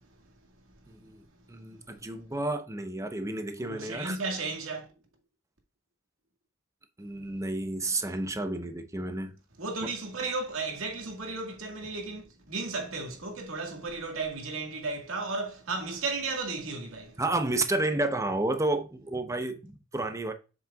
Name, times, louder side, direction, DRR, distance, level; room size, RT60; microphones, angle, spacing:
voice 1, 0.9-4.2 7.0-9.4 9.8-9.9 17.2-20.3, right 2 dB, 15° right, 0.8 m, -31 dB
voice 2, 3.6-4.9 9.6-17.2, right 3 dB, 85° right, 2.0 m, -34 dB
7.6 x 6.4 x 2.4 m
head